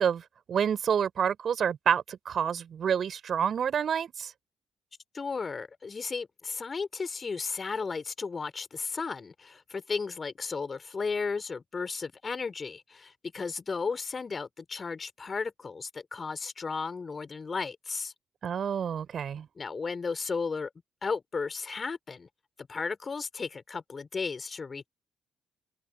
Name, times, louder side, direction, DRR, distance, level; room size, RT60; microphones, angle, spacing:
voice 1, 0.0-4.3 18.4-19.5, right 8 dB, 55° right, 4.1 m, -28 dB
voice 2, 5.1-18.1 19.6-20.7 21.0-22.3 22.6-24.9, left 4 dB, 40° left, 4.3 m, -34 dB
hypercardioid pair, 45°, 0 cm